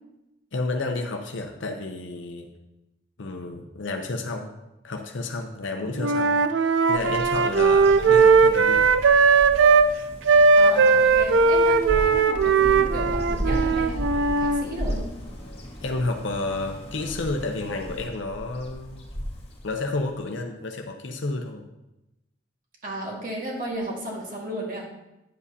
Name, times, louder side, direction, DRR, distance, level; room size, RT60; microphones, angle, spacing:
voice 1, 0.5-2.5 3.2-4.5 4.8-6.4 6.9-9.0 15.8-19.0 19.6-21.6, left 2 dB, 70° left, 3 dB, 0.7 m, -31 dB
Wind instrument woodwind instrument, 6.0-9.9 10.3-14.6, right 4 dB, 70° right, 0.4 m, -18 dB
Bird vocalization bird call bird song, 6.9-20.2, equal, 30° left, 1.6 m, -35 dB
voice 2, 10.6-15.1 22.8-24.9, right 1 dB, 45° right, -2 dB, 1.9 m, -34 dB
9.4 x 7.3 x 2.8 m, 0.95 s
head